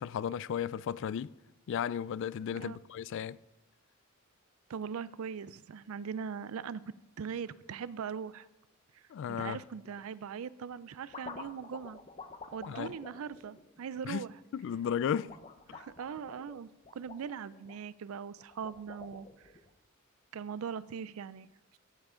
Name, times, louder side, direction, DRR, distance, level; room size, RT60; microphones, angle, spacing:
voice 1, 0.0-1.3 1.7-3.4 9.1-9.6 12.7-12.9 14.0-14.2 14.5-15.4 15.7-15.8, left 8 dB, 65° left, 0.3 m, -34 dB
voice 2, 4.7-8.5 8.9-9.0 9.3-12.0 12.5-14.3 15.7-19.5 20.3-21.5, right 7 dB, 80° right, 0.4 m, -40 dB
sound 1, 9.7-10.1 10.7-14.3 15.1-17.8 18.4-19.7, left 4 dB, 30° left, 0.7 m, -49 dB
15.0 x 7.3 x 3.7 m
head